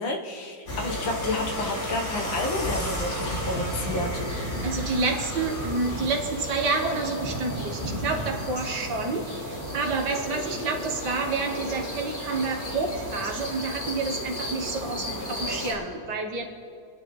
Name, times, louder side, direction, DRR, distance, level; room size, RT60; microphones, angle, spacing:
voice 1, 0.0-4.1, left 2 dB, 75° left, 1 dB, 1.9 m, -30 dB
sound 1, 0.7-15.7, equal, 35° left, 2.4 m, -32 dB
voice 2, 4.6-16.5, right 3 dB, 60° right, 3 dB, 1.7 m, -29 dB
27.0 x 10.0 x 3.1 m, 2.4 s
omnidirectional pair, 2.2 m